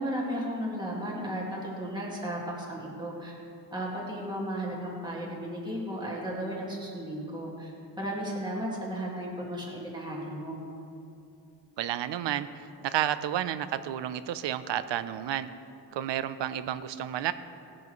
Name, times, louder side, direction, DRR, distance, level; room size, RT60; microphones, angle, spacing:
voice 1, 0.0-3.4 3.7-10.6, equal, 10° right, -4 dB, 2.0 m, -34 dB
voice 2, 11.8-12.5 12.8-15.5 15.9-17.3, right 11 dB, 85° right, 13 dB, 0.6 m, -31 dB
18.0 x 10.5 x 3.1 m, 2.6 s
wide cardioid pair, 175°, 42 cm